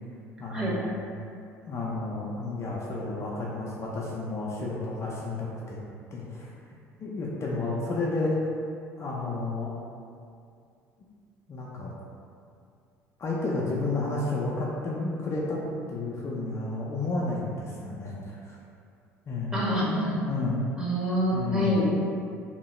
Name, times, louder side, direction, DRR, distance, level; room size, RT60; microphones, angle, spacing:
voice 1, 0.4-0.9 1.7-5.8 6.1-6.5 7.0-8.3 9.0-9.8 11.5-11.9 13.2-15.6 15.9-18.6 19.3-19.5 20.3-20.6 21.3-21.7, left 2 dB, 35° left, -4 dB, 0.4 m, -31 dB
voice 2, 19.5-20.2 20.8-22.1, equal, 10° right, -7 dB, 1.0 m, -26 dB
2.7 x 2.2 x 3.0 m, 2.4 s
hypercardioid pair, 65°, 8 cm